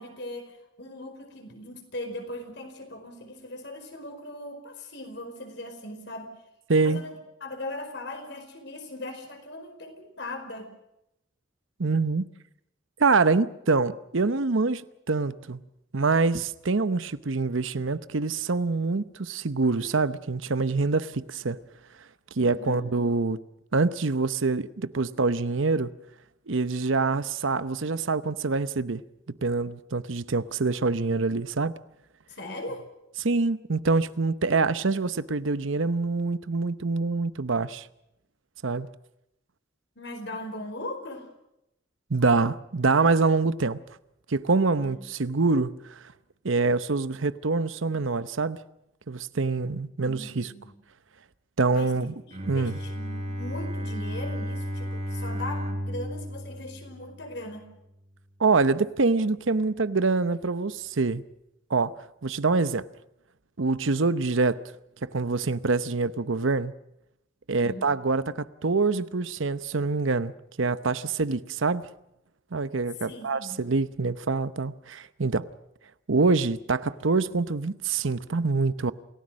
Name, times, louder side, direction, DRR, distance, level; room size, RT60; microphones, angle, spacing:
voice 1, 0.0-6.3 6.8-10.7 22.4-22.9 32.3-32.8 39.9-41.3 44.8-45.0 50.0-50.7 51.7-51.9 52.3-57.7 67.5-67.9 73.0-73.6, left 1 dB, 55° left, 4.8 m, -39 dB
voice 2, 6.7-7.0 11.8-12.3 13.0-15.6 15.9-21.6 22.4-23.4 23.7-25.9 26.5-29.0 29.4-31.8 33.2-37.9 38.6-38.9 42.1-43.8 44.3-46.0 46.4-48.6 49.1-50.5 51.6-52.1 52.5-52.8 58.4-61.2 61.7-62.0 62.2-62.9 63.6-64.6 65.0-66.7 67.5-70.3 70.6-71.9 72.5-75.5 76.1-78.9, right 3 dB, 70° right, 0.8 m, -25 dB
Bowed string instrument, 52.3-57.6, equal, 35° right, 4.1 m, -33 dB
28.0 x 17.0 x 6.4 m
head